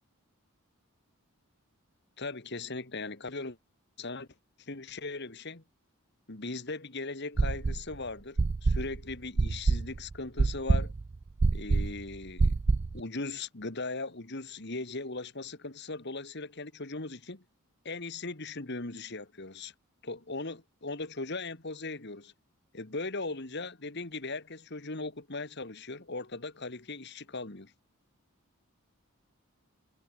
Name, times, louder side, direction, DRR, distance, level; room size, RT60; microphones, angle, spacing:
voice 1, 2.2-3.6 4.0-4.3 4.6-5.6 6.3-10.9 11.5-12.6 12.9-17.4 17.8-19.7 20.0-22.3 22.7-27.7, left 3 dB, 50° left, 2.0 m, -38 dB
sound 1, 7.4-7.9 8.4-13.0, right 3 dB, 30° right, 0.3 m, -26 dB
head